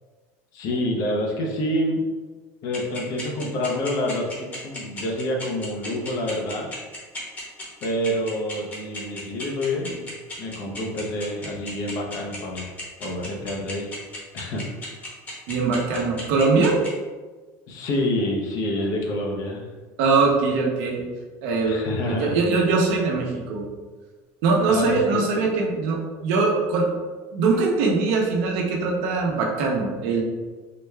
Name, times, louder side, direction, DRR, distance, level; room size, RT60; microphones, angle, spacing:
voice 1, 0.5-2.0 2.6-6.7 7.8-10.1 10.4-12.7 13.0-13.9 14.3-14.7 17.7-19.7 21.6-22.4 24.7-25.4, left 1 dB, 55° left, 0 dB, 0.7 m, -27 dB
sound 1, 2.7-16.9, left 2 dB, 25° left, 1.1 m, -35 dB
voice 2, 15.5-16.7 20.0-21.0 21.4-23.6 24.4-26.9 27.3-30.2, right 4 dB, 75° right, -1 dB, 0.8 m, -22 dB
4.0 x 2.2 x 3.3 m, 1.4 s
cardioid pair, 140°, 7 cm